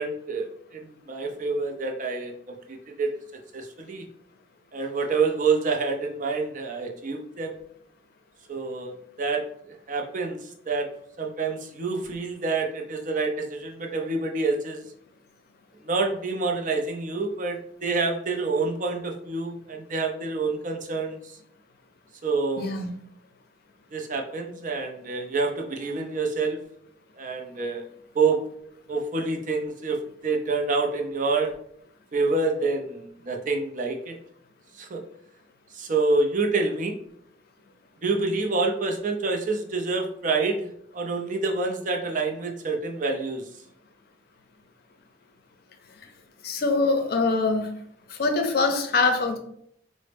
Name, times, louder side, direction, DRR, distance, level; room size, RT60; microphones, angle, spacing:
voice 1, 0.0-3.1 3.5-4.0 4.7-7.6 8.5-10.9 11.2-14.8 15.8-21.4 22.2-22.7 23.9-26.6 27.2-27.8 28.1-28.4 28.9-31.5 32.1-34.1 34.7-35.0 35.7-37.0 38.0-43.4, right 3 dB, 45° right, 2 dB, 0.5 m, -27 dB
voice 2, 22.6-22.9 46.4-47.7 48.1-49.4, left 3 dB, 55° left, 6 dB, 0.5 m, -23 dB
4.0 x 2.0 x 3.3 m, 0.70 s
head